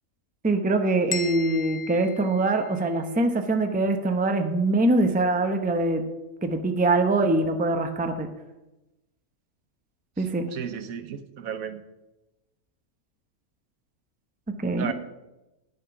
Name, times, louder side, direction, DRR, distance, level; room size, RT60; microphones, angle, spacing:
voice 1, 0.4-6.0 6.4-8.3 10.2-10.5 14.6-14.9, right 2 dB, 10° right, 6 dB, 0.6 m, -23 dB
sound 1, 1.1-3.1, left 6 dB, 45° left, 0.9 m, -36 dB
voice 2, 10.2-11.8 14.8-14.9, right 8 dB, 75° right, 10 dB, 1.2 m, -34 dB
9.9 x 7.2 x 5.8 m, 1.0 s
omnidirectional pair, 1.5 m